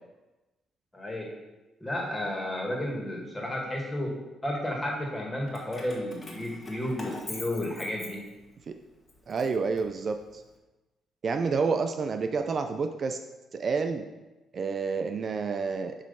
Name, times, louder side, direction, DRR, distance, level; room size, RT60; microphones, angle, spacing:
voice 1, 0.9-1.3 1.8-4.1 4.4-8.2, left 1 dB, 15° left, -1 dB, 1.9 m, -32 dB
Keys jangling, 5.5-8.6 9.1-10.4, left 2 dB, 30° left, 1.3 m, -43 dB
voice 2, 9.3-10.4 11.2-13.2 13.5-14.0 14.5-15.9, right 5 dB, 45° right, 6 dB, 0.4 m, -29 dB
7.4 x 3.1 x 5.6 m, 1.1 s
cardioid pair, 90°, 0 cm